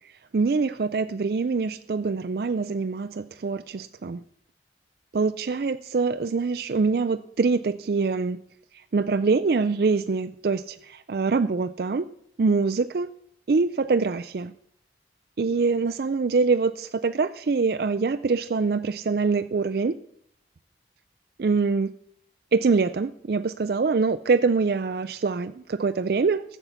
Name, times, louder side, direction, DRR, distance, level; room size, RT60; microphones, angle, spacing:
voice 1, 0.3-4.2 5.1-8.4 8.9-12.1 12.4-13.1 13.5-14.5 15.4-20.0 21.4-21.9 22.5-26.4, right 4 dB, 55° right, 9 dB, 0.4 m, -24 dB
14.0 x 7.1 x 8.1 m, 0.70 s
head